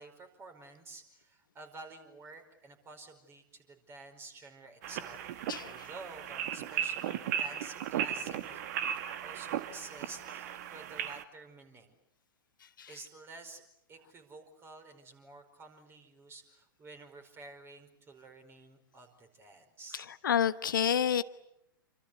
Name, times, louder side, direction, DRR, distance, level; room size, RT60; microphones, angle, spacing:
voice 1, 0.0-5.2 5.6-12.0 12.9-13.6 13.9-20.1, right 3 dB, 20° right, 7 dB, 5.0 m, -51 dB
sound 1, 4.8-11.2, right 9 dB, 50° right, 1.8 m, -36 dB
voice 2, 19.9-21.2, left 9 dB, 65° left, 12 dB, 1.1 m, -29 dB
28.0 x 25.5 x 8.3 m, 0.78 s
figure-of-eight pair, 105°, 12 cm